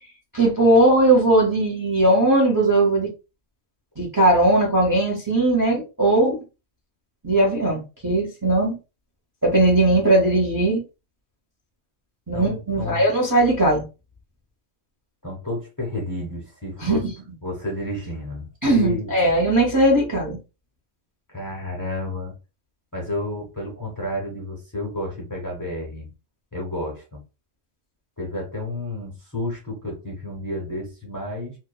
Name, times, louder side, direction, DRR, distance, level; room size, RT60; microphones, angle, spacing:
voice 1, 0.3-3.1 4.0-6.4 7.2-8.7 9.4-10.8 12.3-13.8 16.8-17.0 18.6-20.4, right 1 dB, 20° right, -2 dB, 0.7 m, -19 dB
voice 2, 12.3-13.1 15.2-17.1 17.4-19.1 21.3-22.3 22.9-26.1 26.5-27.2 28.2-31.6, left 1 dB, 20° left, -2 dB, 0.7 m, -31 dB
2.9 x 2.1 x 2.3 m, 0.29 s
omnidirectional pair, 1.3 m